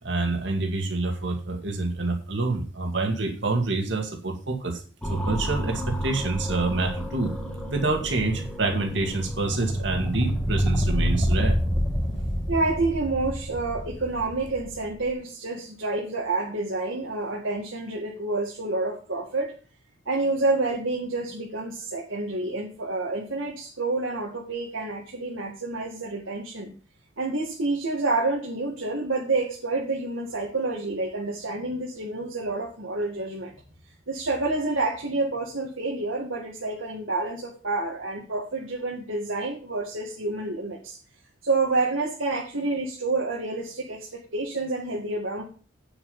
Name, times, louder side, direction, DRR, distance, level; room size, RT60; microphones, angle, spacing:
voice 1, 0.0-4.8 5.1-7.3 7.7-11.6, right 3 dB, 60° right, 2 dB, 2.2 m, -27 dB
sound 1, 5.0-15.1, equal, 5° left, 1.7 m, -28 dB
voice 2, 12.5-19.5 20.1-26.7 27.2-33.5 34.1-41.0 41.4-45.4, right 3 dB, 80° right, -1 dB, 2.2 m, -28 dB
9.1 x 7.0 x 5.5 m, 0.39 s
head